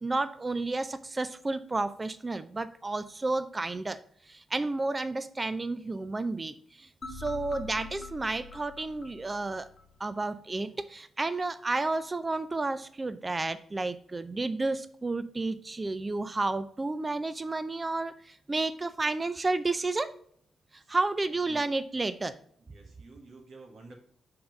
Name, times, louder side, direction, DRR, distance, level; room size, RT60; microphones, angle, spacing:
voice 1, 0.0-9.7 10.0-20.1 20.7-22.4, right 2 dB, 30° right, 13 dB, 0.5 m, -31 dB
sound 1, 7.0-10.1, left 4 dB, 55° left, 1.0 m, -44 dB
voice 2, 21.3-21.6 22.6-23.9, right 3 dB, 65° right, -1 dB, 1.3 m, -51 dB
5.8 x 3.7 x 5.1 m, 0.62 s
hypercardioid pair, 40°, 0 cm